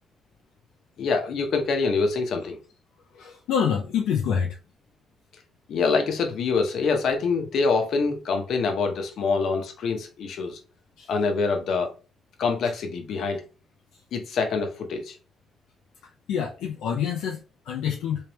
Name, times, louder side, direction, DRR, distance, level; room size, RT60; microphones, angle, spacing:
voice 1, 1.0-2.6 5.7-10.6 11.1-11.9 12.4-13.4 14.1-15.2, left 4 dB, 70° left, 0.9 m, -25 dB
voice 2, 3.1-4.6 11.0-11.1 16.3-18.3, left 7 dB, 85° left, 0.5 m, -27 dB
3.4 x 3.2 x 2.9 m
cardioid pair, 90°, 0 cm